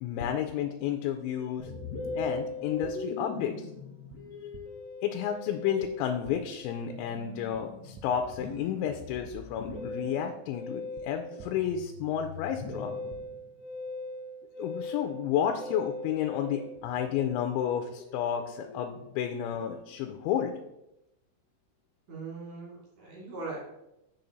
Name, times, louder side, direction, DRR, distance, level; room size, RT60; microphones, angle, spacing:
voice 1, 0.0-1.7 2.1-3.7 4.3-4.5 5.0-12.9 14.6-20.5, left 9 dB, 85° left, 5 dB, 3.0 m, -31 dB
Musical instrument, 1.6-19.2, left 2 dB, 60° left, 1.9 m, -40 dB
sound 1, 2.8-2.9 4.1-4.2 4.5-4.6 5.8-5.9 6.2-6.4 7.5-7.6 7.9-8.0 9.2-9.3 9.7-9.8 10.9-11.0 11.4-11.5 12.7-12.8 13.1-13.2, right 10 dB, 80° right, 2.9 m, -48 dB
voice 2, 22.1-23.6, right 3 dB, 45° right, -5 dB, 3.7 m, -40 dB
7.0 x 6.8 x 3.9 m, 0.87 s
omnidirectional pair, 5.3 m